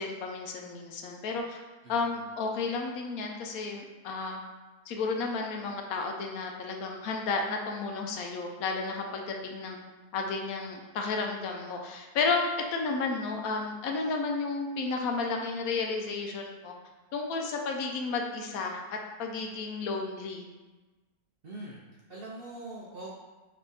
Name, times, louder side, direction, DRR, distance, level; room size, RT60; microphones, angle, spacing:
voice 1, 0.0-1.6 1.9-4.4 4.9-9.8 10.1-16.7 17.1-20.5, left 4 dB, 75° left, 2 dB, 1.0 m, -32 dB
voice 2, 21.4-23.1, right 2 dB, 60° right, -4 dB, 0.6 m, -43 dB
3.5 x 3.3 x 4.0 m, 1.2 s
omnidirectional pair, 1.6 m